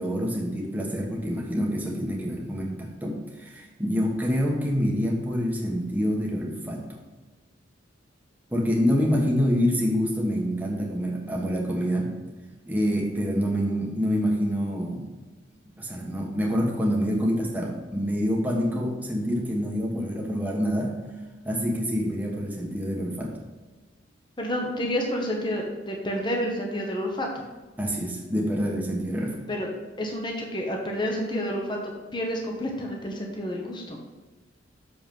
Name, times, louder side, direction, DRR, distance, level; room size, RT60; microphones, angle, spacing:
voice 1, 0.0-6.9 8.5-12.2 12.7-15.0 15.8-21.0 21.4-23.3 27.8-29.3, equal, 10° right, -2 dB, 1.2 m, -26 dB
voice 2, 24.4-27.3 29.5-29.7 30.0-31.8 32.1-34.0, equal, 25° left, 0 dB, 1.1 m, -29 dB
6.8 x 5.3 x 5.4 m, 1.2 s
head